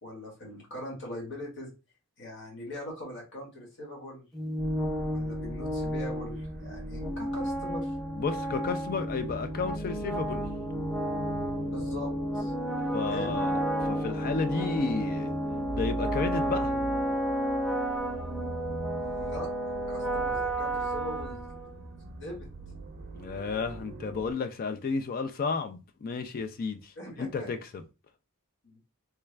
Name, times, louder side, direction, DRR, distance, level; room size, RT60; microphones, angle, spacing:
voice 1, 0.0-1.7 2.2-4.2 5.1-8.0 11.6-12.5 13.1-13.4 19.0-21.4 22.2-22.5 27.0-27.5 28.6-28.8, left 1 dB, 55° left, 1.6 m, -41 dB
sound 1, 4.3-22.0, equal, ahead, 0.6 m, -32 dB
sound 2, 4.6-24.3, right 2 dB, 50° right, 0.5 m, -42 dB
voice 2, 8.1-10.4 12.9-15.3 15.7-16.7 23.1-27.8, left 4 dB, 40° left, 0.4 m, -32 dB
3.3 x 2.3 x 3.2 m
head